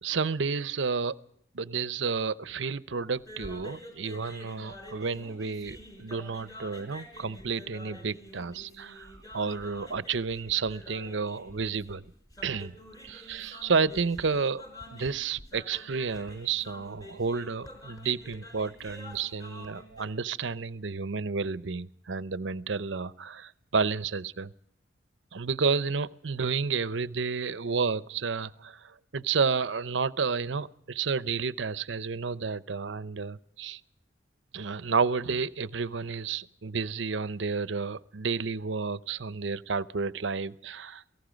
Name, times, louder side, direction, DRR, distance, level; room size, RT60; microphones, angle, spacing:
voice 1, 0.0-1.2 1.5-12.0 12.4-12.8 13.0-14.6 14.9-24.5 25.3-33.8 34.5-41.1, right 5 dB, 70° right, 0.7 m, -31 dB
sound 1, 3.1-20.0, left 1 dB, 20° left, 5.1 m, -48 dB
28.5 x 18.5 x 5.1 m
head